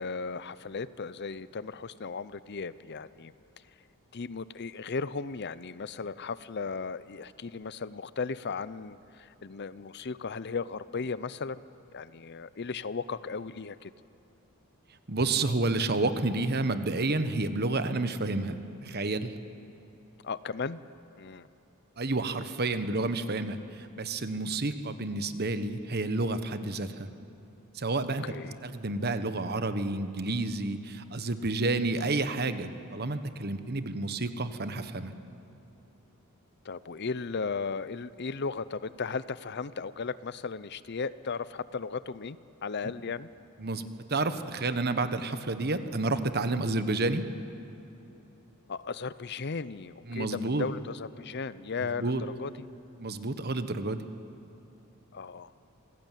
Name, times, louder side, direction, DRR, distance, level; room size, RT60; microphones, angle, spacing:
voice 1, 0.0-3.3 4.1-11.6 11.9-13.9 20.2-20.8 21.2-21.5 28.2-28.6 36.6-43.3 48.7-52.5 55.1-55.5, left 4 dB, 50° left, 16 dB, 0.6 m, -36 dB
voice 2, 15.1-19.3 22.0-27.1 27.7-28.2 28.6-35.1 43.6-47.3 50.1-50.7 51.8-52.2 53.0-54.1, right 2 dB, 45° right, 10 dB, 1.3 m, -30 dB
27.0 x 19.0 x 9.2 m, 3.0 s
head